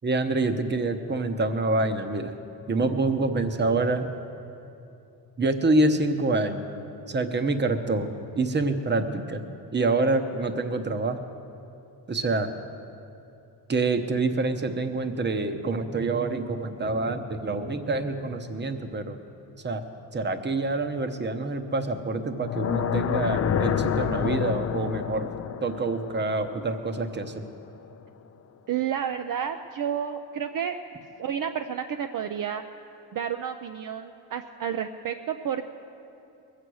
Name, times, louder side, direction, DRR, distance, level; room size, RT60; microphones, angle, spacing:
voice 1, 0.0-2.3 2.7-4.1 5.4-6.6 7.1-9.4 9.7-11.2 12.1-12.5 13.7-19.2 19.6-19.8 20.1-25.3 25.6-27.4, right 2 dB, 25° right, 8 dB, 0.9 m, -26 dB
sound 1, 22.3-27.5, left 8 dB, 40° left, 0.5 m, -28 dB
voice 2, 28.7-30.8 31.2-32.6 33.1-35.7, right 8 dB, 55° right, 6 dB, 0.6 m, -30 dB
21.5 x 8.4 x 6.3 m, 2.7 s
cardioid pair, 125°, 40 cm